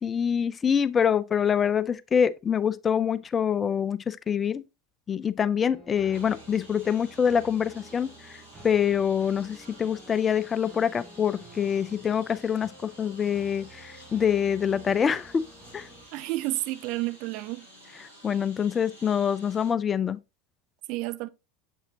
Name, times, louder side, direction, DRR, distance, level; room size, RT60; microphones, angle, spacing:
voice 1, 0.0-4.6 5.1-15.4 15.7-15.9 18.2-20.2, left 7 dB, 25° left, 0.4 m, -25 dB
sound 1, 5.7-16.1, right 2 dB, 15° right, 1.9 m, -51 dB
Engine, 6.1-19.7, equal, 90° right, 2.1 m, -52 dB
voice 2, 16.1-17.7 20.9-21.3, right 19 dB, 55° right, 0.5 m, -30 dB
7.1 x 5.4 x 2.8 m
figure-of-eight pair, 80°, 0 cm